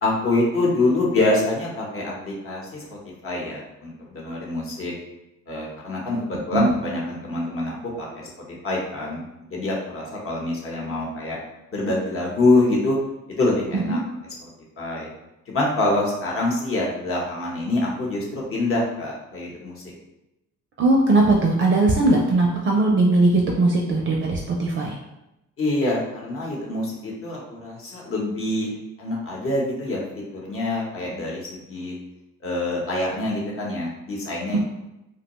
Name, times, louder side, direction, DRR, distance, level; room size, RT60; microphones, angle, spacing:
voice 1, 0.0-2.8 3.2-4.9 5.5-9.2 9.5-11.4 11.7-13.0 13.4-14.0 14.4-14.5 14.8-15.1 15.5-19.7 25.6-32.0 32.4-34.6, left 2 dB, 45° left, -3 dB, 0.9 m, -25 dB
voice 2, 20.8-24.9 34.5-34.6, right 2 dB, 40° right, 0 dB, 0.4 m, -19 dB
2.6 x 2.1 x 2.9 m, 0.93 s
cardioid pair, 90°, 30 cm